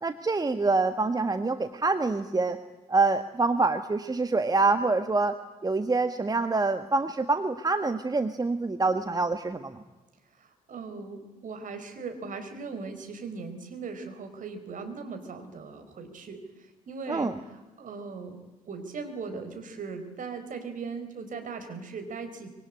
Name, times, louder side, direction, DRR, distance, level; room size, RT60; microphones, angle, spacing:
voice 1, 0.0-2.6 2.9-5.4 5.6-9.8 17.1-17.4, right 3 dB, 20° right, 9 dB, 1.5 m, -26 dB
voice 2, 10.3-18.4 18.6-22.5, right 4 dB, 45° right, 6 dB, 4.4 m, -39 dB
25.0 x 23.0 x 10.0 m, 1.2 s
figure-of-eight pair, 40°, 18 cm